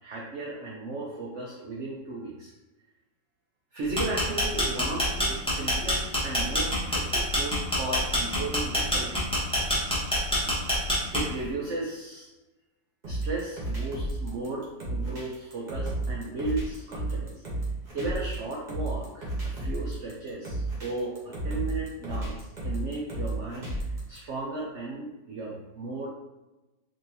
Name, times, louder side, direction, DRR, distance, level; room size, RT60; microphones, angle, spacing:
voice 1, 0.0-2.5 3.7-9.3 11.1-12.3 13.1-17.3 17.9-23.7 24.1-26.1, right 2 dB, 85° right, -3 dB, 0.6 m, -35 dB
sound 1, 3.8-11.5, left 1 dB, 5° left, 0.4 m, -26 dB
sound 2, 13.0-24.2, right 2 dB, 35° right, 0.8 m, -32 dB
4.0 x 2.7 x 2.8 m, 1.0 s
omnidirectional pair, 2.0 m